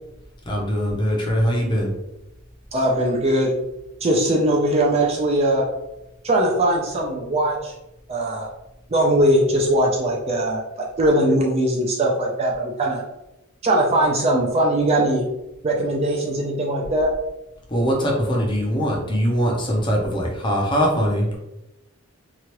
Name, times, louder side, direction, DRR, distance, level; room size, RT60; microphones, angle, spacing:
voice 1, 0.5-1.9 17.7-21.4, equal, 20° left, -1 dB, 0.6 m, -22 dB
voice 2, 2.7-3.5 4.0-5.6 6.2-7.7 8.1-8.5 8.9-13.0 13.6-15.2 15.6-17.1, right 1 dB, 30° right, -1 dB, 0.4 m, -20 dB
3.0 x 2.4 x 2.9 m, 0.93 s
head